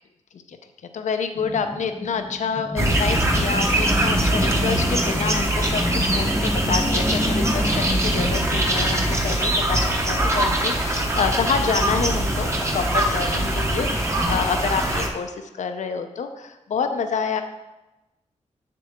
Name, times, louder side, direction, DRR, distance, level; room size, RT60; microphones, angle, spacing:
voice 1, 0.9-17.4, left 6 dB, 75° left, 7 dB, 0.7 m, -28 dB
sound 1, 1.4-14.4, left 1 dB, 10° left, 0.5 m, -31 dB
sound 2, 2.8-15.1, right 1 dB, 20° right, 0.9 m, -22 dB
7.6 x 6.7 x 3.6 m, 1.0 s
wide cardioid pair, 165°, 12 cm